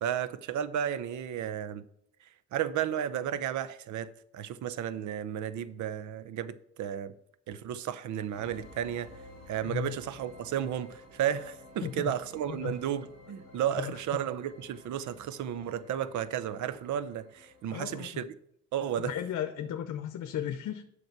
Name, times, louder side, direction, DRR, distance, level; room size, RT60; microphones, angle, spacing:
voice 1, 0.0-1.8 2.5-7.1 7.5-9.1 9.5-18.3 18.7-19.1, right 9 dB, 70° right, 0.7 m, -33 dB
sound 1, 8.3-17.6, left 2 dB, 90° right, 4.2 m, -53 dB
voice 2, 9.6-10.0 11.8-12.1 12.5-12.8 13.8-14.0 17.7-18.1 19.0-20.8, left 10 dB, 70° left, 0.8 m, -35 dB
8.1 x 6.1 x 5.9 m
cardioid pair, 90°, 30 cm